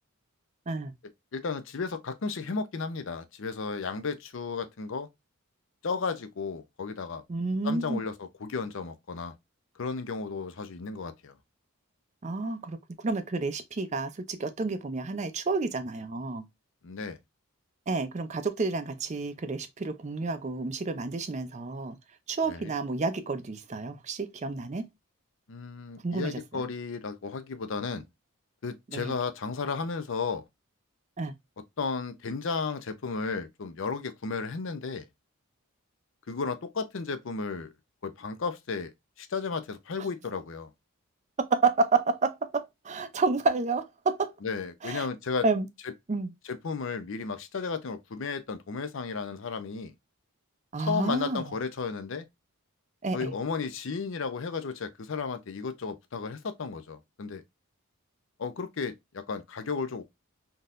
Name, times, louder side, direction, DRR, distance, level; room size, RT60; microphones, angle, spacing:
voice 1, 1.3-5.1 5.8-7.2 7.6-9.3 9.8-11.3 16.8-17.2 22.5-22.7 25.5-28.0 28.6-30.4 31.8-35.1 36.3-37.7 38.0-38.9 39.2-40.7 44.4-45.5 45.8-45.9 46.4-49.9 50.8-52.3 53.1-57.4 58.4-60.0, left 4 dB, 60° left, 0.5 m, -34 dB
voice 2, 7.3-8.0 12.2-12.8 13.0-16.5 17.9-22.0 22.3-24.9 26.0-26.6 28.9-29.1 31.2-31.3 41.5-44.3 44.8-45.1 45.4-45.7 46.1-46.3 50.7-51.4 53.0-53.3, right 3 dB, 30° right, 0.4 m, -30 dB
3.7 x 2.8 x 2.4 m
head